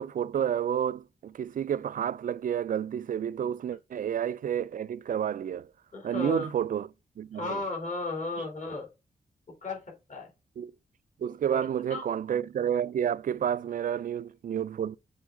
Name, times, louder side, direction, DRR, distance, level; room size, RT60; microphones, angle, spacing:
voice 1, 0.0-5.7 6.0-6.9 7.2-7.6 10.6-10.7 11.2-15.0, right 9 dB, 60° right, 0.4 m, -30 dB
voice 2, 5.9-6.5 7.3-8.9 9.6-9.8 10.1-10.3 11.5-11.6 11.9-12.0, left 3 dB, 55° left, 3.1 m, -34 dB
7.2 x 3.8 x 3.7 m
cardioid pair, 80°, 15 cm